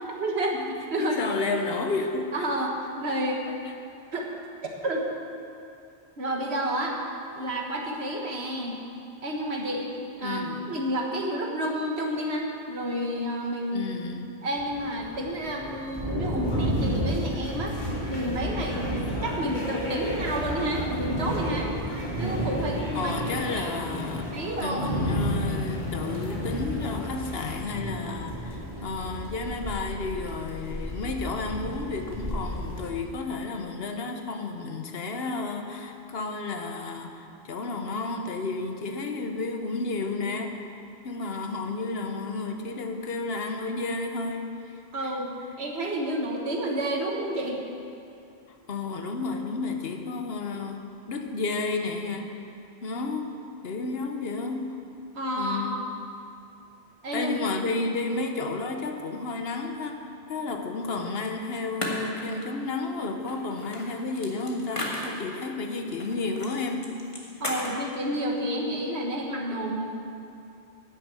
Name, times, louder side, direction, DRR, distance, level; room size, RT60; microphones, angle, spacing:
voice 1, 0.1-0.6 0.9-1.2 2.3-3.4 4.1-4.3 4.8-5.1 6.2-7.0 7.3-8.8 9.2-9.9 10.2-13.9 14.4-17.7 18.1-21.7 22.2-23.2 23.5-25.0 44.9-45.3 45.6-47.6 55.1-55.7 57.0-57.3 67.4-69.9, right 1 dB, 75° right, 0 dB, 1.6 m, -30 dB
voice 2, 0.7-2.5 3.5-3.6 10.2-10.7 13.7-14.3 22.9-24.3 24.6-40.7 41.0-45.1 48.7-50.8 51.1-52.3 52.8-53.3 53.6-54.8 55.3-55.8 57.1-67.0, left 3 dB, 65° left, 4 dB, 1.1 m, -32 dB
sound 1, 14.6-32.9, equal, 20° right, 2.0 m, -32 dB
sound 2, 16.4-27.6, equal, 45° left, 1.7 m, -39 dB
sound 3, 61.1-61.2 61.8-62.6 63.3-65.5 66.0-66.5 66.8-67.8, left 1 dB, 30° left, 1.5 m, -34 dB
10.5 x 6.5 x 8.3 m, 2.6 s
omnidirectional pair, 1.1 m